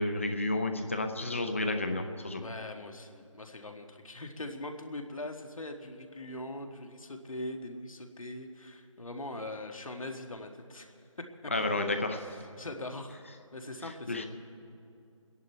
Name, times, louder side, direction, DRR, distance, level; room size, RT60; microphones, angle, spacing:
voice 1, 0.0-2.4 11.5-12.3 14.1-14.3, left 2 dB, 25° left, 7 dB, 0.7 m, -31 dB
voice 2, 2.4-11.5 12.2-13.2 13.5-14.3, left 1 dB, 85° left, 5 dB, 1.6 m, -42 dB
27.0 x 10.5 x 4.5 m, 2.7 s
figure-of-eight pair, 175°, 17 cm